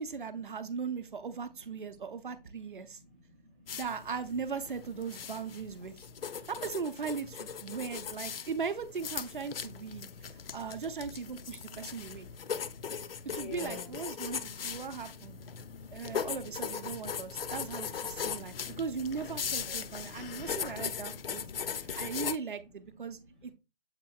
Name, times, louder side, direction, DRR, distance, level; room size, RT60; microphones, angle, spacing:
voice 1, 0.0-3.0 3.7-6.0 6.5-10.1 10.5-12.3 13.3-15.4 15.9-23.5, right 5 dB, 60° right, 0.6 m, -38 dB
voice 2, 2.7-3.7 6.2-6.5 10.1-10.6 11.9-14.0 15.4-16.1 16.9-17.4 18.2-18.8 19.4-20.6 21.0-22.0 22.9-23.3, left 2 dB, 10° left, 0.4 m, -52 dB
sound 1, 3.7-22.4, left 7 dB, 75° left, 0.5 m, -39 dB
7.4 x 2.8 x 2.3 m
figure-of-eight pair, 155°, 29 cm